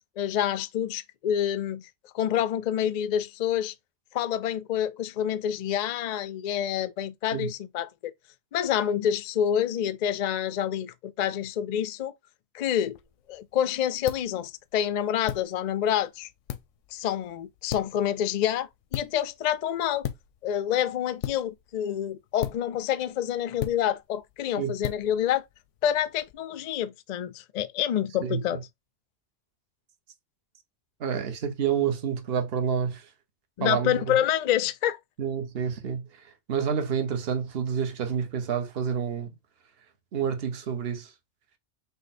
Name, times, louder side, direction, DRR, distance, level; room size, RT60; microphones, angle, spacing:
voice 1, 0.2-3.7 4.1-8.1 8.5-12.1 12.5-13.0 13.3-16.3 16.9-20.1 20.4-25.5 25.8-28.6 33.6-35.0, left 10 dB, 65° left, 0.4 m, -27 dB
sound 1, 12.9-26.3, left 11 dB, 85° left, 0.9 m, -40 dB
voice 2, 31.0-33.1 33.6-34.1 35.2-39.3 40.1-41.1, right 7 dB, 55° right, 1.0 m, -29 dB
5.4 x 2.2 x 4.1 m
omnidirectional pair, 1.2 m